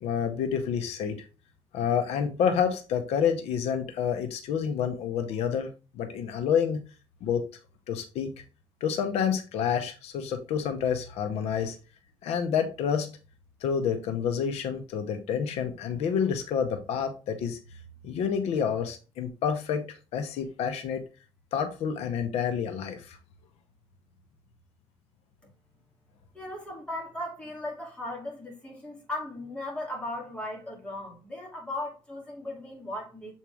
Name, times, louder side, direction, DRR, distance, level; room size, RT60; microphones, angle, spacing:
voice 1, 0.0-1.2 1.7-5.7 5.9-6.8 7.2-7.4 7.9-8.3 8.8-11.8 12.2-13.1 13.6-17.6 18.0-19.8 20.1-21.0 21.5-23.2, left 7 dB, 85° left, 0.9 m, -28 dB
voice 2, 26.3-33.3, left 1 dB, 10° left, 2.7 m, -37 dB
7.3 x 4.5 x 3.5 m
cardioid pair, 140°, 10 cm